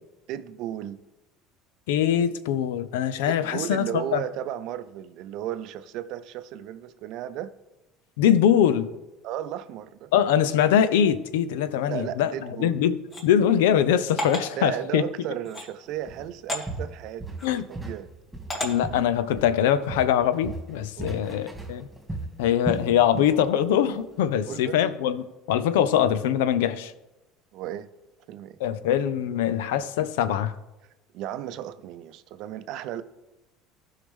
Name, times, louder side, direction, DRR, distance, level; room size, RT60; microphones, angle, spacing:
voice 1, 0.3-1.0 3.2-7.5 9.2-10.1 11.9-12.8 14.6-17.4 17.7-18.1 21.0-21.2 24.5-24.8 27.5-27.9 28.3-28.6 31.1-33.0, right 11 dB, 65° right, 0.6 m, -34 dB
voice 2, 1.9-4.2 8.2-8.9 10.1-12.3 12.6-15.0 17.4-17.6 18.6-21.9 22.4-26.9 28.6-30.5, left 9 dB, 80° left, 0.6 m, -23 dB
sound 1, 13.1-13.2 14.2-14.5 15.4-15.7 16.5-16.6 17.4-17.6 18.5-18.7, left 1 dB, 30° left, 2.5 m, -31 dB
Walk footsteps, 16.1-16.3 16.7-18.0 18.3-19.6 19.9-23.4 23.7-24.0 24.4-24.5, right 2 dB, 10° right, 2.5 m, -35 dB
14.5 x 5.6 x 3.6 m
hypercardioid pair, 80°, 0 cm